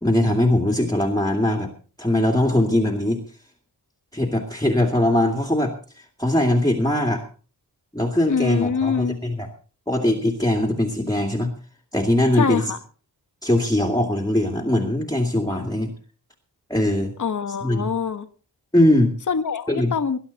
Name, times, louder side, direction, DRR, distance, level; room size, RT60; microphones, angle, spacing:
voice 1, 0.0-1.7 2.0-3.2 4.1-5.7 6.2-7.2 7.9-9.5 9.9-11.5 11.9-12.6 13.4-15.9 16.7-17.1 17.6-17.9 18.7-19.1 19.7-19.9, left 1 dB, 10° left, 2.3 m, -21 dB
voice 2, 8.3-9.2 12.3-12.8 17.2-18.3 19.3-20.2, left 6 dB, 45° left, 1.3 m, -24 dB
20.5 x 11.5 x 4.1 m
wide cardioid pair, 110°, 41 cm